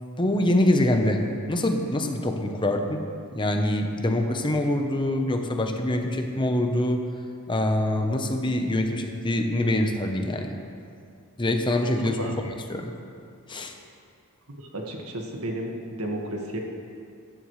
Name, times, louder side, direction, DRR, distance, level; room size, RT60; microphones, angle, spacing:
voice 1, 0.2-1.2 1.5-3.0 3.3-7.0 7.5-10.6 11.4-12.9 13.5-13.7, left 1 dB, 20° left, 4 dB, 0.9 m, -24 dB
voice 2, 14.6-16.6, right 1 dB, 85° right, 0 dB, 1.7 m, -33 dB
14.5 x 12.5 x 3.2 m, 2.4 s
head